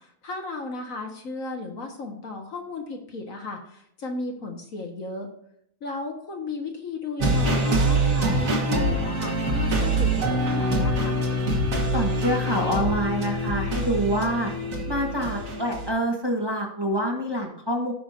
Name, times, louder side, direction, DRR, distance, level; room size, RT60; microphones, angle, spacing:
voice 1, 0.2-5.3 5.8-11.2, left 3 dB, 55° left, 2 dB, 1.7 m, -34 dB
sound 1, 7.2-15.9, right 1 dB, 55° right, 1.9 m, -24 dB
voice 2, 11.9-14.5 14.9-17.9, equal, 15° right, 0 dB, 1.3 m, -26 dB
17.0 x 5.8 x 2.6 m, 0.73 s
omnidirectional pair, 1.7 m